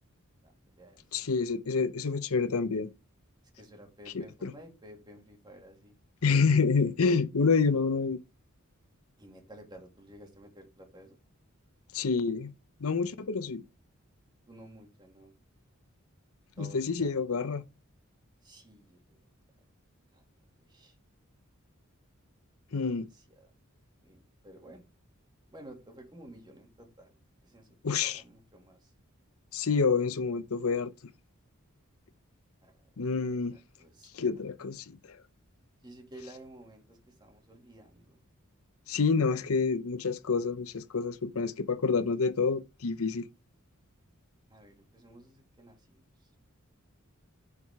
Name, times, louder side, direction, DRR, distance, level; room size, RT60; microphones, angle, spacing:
voice 1, 0.4-1.0 3.6-6.0 9.2-11.2 14.5-15.3 16.6-17.2 18.4-19.2 20.1-20.2 20.6-20.9 22.7-22.8 23.1-23.5 24.0-24.8 25.5-27.1 27.4-28.9 32.6-32.7 33.5-34.4 35.8-38.2 44.5-46.0, right 1 dB, 20° right, 2.2 m, -53 dB
voice 2, 1.1-2.9 4.1-4.5 6.2-8.2 11.9-12.5 12.8-13.6 16.6-17.6 22.7-23.1 27.8-28.2 29.5-30.9 33.0-33.6 34.1-35.2 38.9-43.3, left 5 dB, 85° left, 0.7 m, -28 dB
9.7 x 4.9 x 3.6 m
head